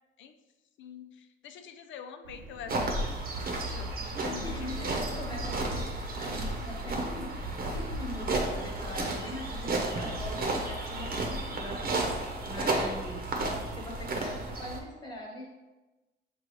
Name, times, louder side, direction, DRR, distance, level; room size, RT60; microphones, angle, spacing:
voice 1, 0.8-3.9 4.2-4.7, left 7 dB, 70° left, 8 dB, 0.4 m, -45 dB
sound 1, 2.2-14.5, right 2 dB, 75° right, 0.7 m, -47 dB
sound 2, 2.7-14.8, right 2 dB, 50° right, 0.8 m, -33 dB
voice 2, 4.2-7.3 7.7-12.1 12.4-13.3 13.7-15.5, left 1 dB, 20° left, -2 dB, 1.3 m, -42 dB
6.3 x 2.3 x 3.1 m, 1.1 s
cardioid pair, 90°, 20 cm